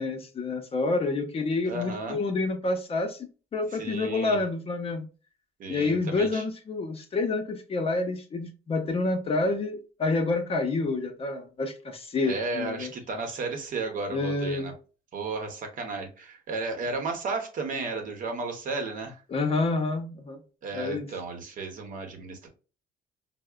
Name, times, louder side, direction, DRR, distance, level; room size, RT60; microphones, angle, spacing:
voice 1, 0.0-3.2 3.5-5.1 5.7-12.9 14.1-14.7 19.3-20.4 20.7-21.1, left 3 dB, 35° left, 5 dB, 0.6 m, -28 dB
voice 2, 1.6-2.2 3.8-4.4 5.6-6.4 12.2-14.7 15.1-19.2 20.6-22.5, right 3 dB, 50° right, 4 dB, 0.8 m, -33 dB
4.6 x 2.1 x 2.2 m, 0.35 s
cardioid pair, 110°, 17 cm